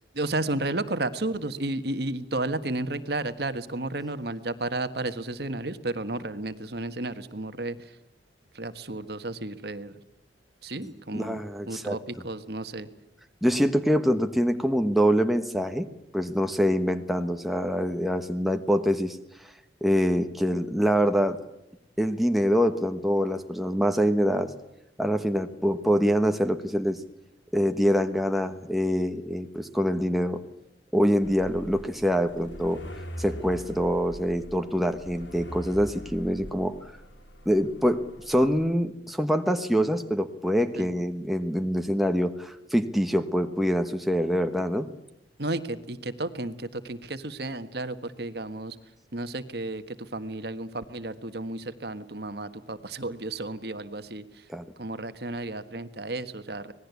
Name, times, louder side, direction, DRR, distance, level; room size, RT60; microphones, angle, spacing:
voice 1, 0.1-8.0 8.5-10.0 10.6-11.4 11.7-12.9 40.7-40.9 45.4-48.8 49.1-54.5 54.8-56.7, right 2 dB, 55° right, 11 dB, 1.5 m, -33 dB
voice 2, 11.1-12.0 13.4-15.9 16.1-19.5 19.8-21.4 22.0-24.5 25.0-27.0 27.5-30.4 30.9-32.8 33.2-36.8 37.4-44.9 54.5-54.6, equal, ahead, 6 dB, 1.2 m, -25 dB
sound 1, 31.2-38.7, equal, 80° left, 3.7 m, -43 dB
25.5 x 19.5 x 8.3 m, 0.87 s
head